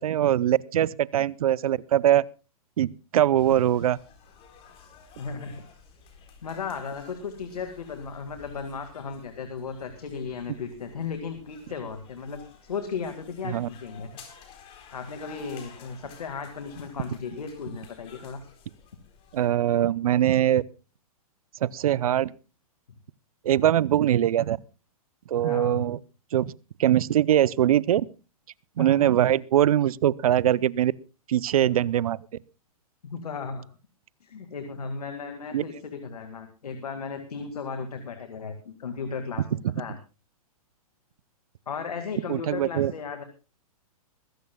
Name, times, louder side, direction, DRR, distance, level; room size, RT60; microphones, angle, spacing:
voice 1, 0.0-2.2 2.8-4.0 13.5-13.7 19.3-20.6 21.6-22.3 23.4-24.6 25.3-26.0 26.3-26.5 26.8-28.1 28.8-30.9 31.3-32.2 35.5-35.7 42.3-42.9, right 11 dB, 70° right, 0.7 m, -22 dB
sound 1, 3.3-19.5, left 6 dB, 30° left, 4.2 m, -52 dB
voice 2, 5.2-5.6 6.4-14.2 14.9-18.4 25.4-25.8 28.8-29.2 33.0-33.7 34.2-39.9 41.7-43.2, left 5 dB, 85° left, 2.2 m, -35 dB
22.0 x 15.0 x 2.3 m
hypercardioid pair, 135°, 19 cm